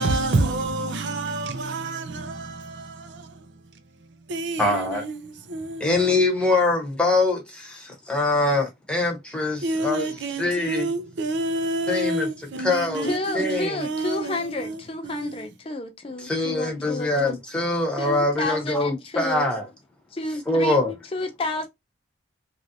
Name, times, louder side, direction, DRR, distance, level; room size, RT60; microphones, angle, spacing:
voice 1, 0.0-3.5 4.3-6.0 9.6-15.5, right 2 dB, 80° right, 0.5 m, -28 dB
voice 2, 4.6-5.0 5.8-10.9 11.9-12.3 12.6-13.1 13.3-13.8 16.2-19.6 20.5-20.9, left 2 dB, 5° left, 0.8 m, -23 dB
voice 3, 13.0-17.4 18.0-19.5 20.1-20.8 21.1-21.7, left 2 dB, 30° left, 0.4 m, -30 dB
3.0 x 2.6 x 2.7 m
head